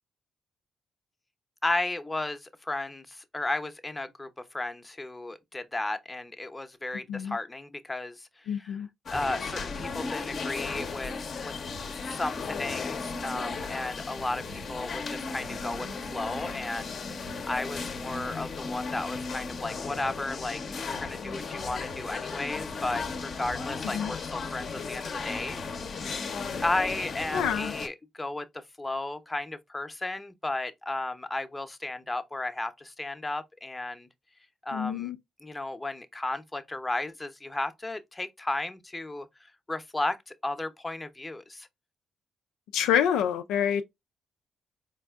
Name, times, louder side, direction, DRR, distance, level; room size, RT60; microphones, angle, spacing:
voice 1, 1.6-4.3 4.5-8.8 9.1-11.1 11.4-11.5 12.0-16.9 17.2-25.6 26.1-26.2 26.6-34.1 34.6-35.1 35.4-39.3 39.7-41.7, left 2 dB, 20° left, 0.7 m, -34 dB
voice 2, 8.5-8.9 23.9-24.1 27.3-27.7 34.7-35.2 42.7-43.8, left 9 dB, 80° left, 0.3 m, -27 dB
sound 1, 9.1-27.9, left 4 dB, 55° left, 0.7 m, -35 dB
4.2 x 3.2 x 2.3 m
hypercardioid pair, 45°, 0 cm